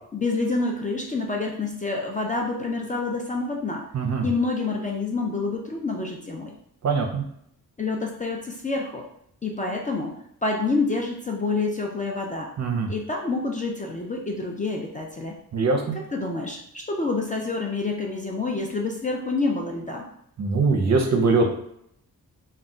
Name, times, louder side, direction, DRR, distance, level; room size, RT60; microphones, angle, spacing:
voice 1, 0.1-3.9 4.2-6.5 7.8-9.0 9.4-10.2 10.4-12.5 12.9-15.4 15.9-20.1, left 3 dB, 25° left, 0 dB, 0.3 m, -27 dB
voice 2, 3.9-4.3 6.8-7.2 12.6-12.9 15.5-16.0 20.4-21.5, right 4 dB, 50° right, 3 dB, 0.5 m, -22 dB
2.2 x 2.1 x 3.7 m, 0.73 s
wide cardioid pair, 100°, 36 cm